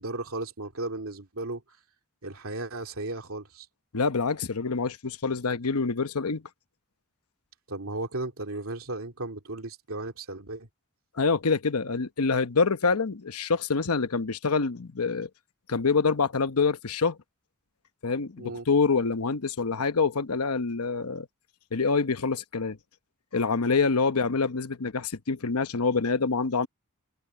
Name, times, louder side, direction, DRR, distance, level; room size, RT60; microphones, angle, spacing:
voice 1, 0.0-1.6 2.2-3.7 7.7-10.7 18.4-18.7, right 2 dB, 70° right, 2.8 m, -35 dB
voice 2, 3.9-6.4 11.2-15.3 15.7-17.2 18.0-21.3 21.7-22.8 23.3-26.7, left 4 dB, 85° left, 1.0 m, -26 dB
head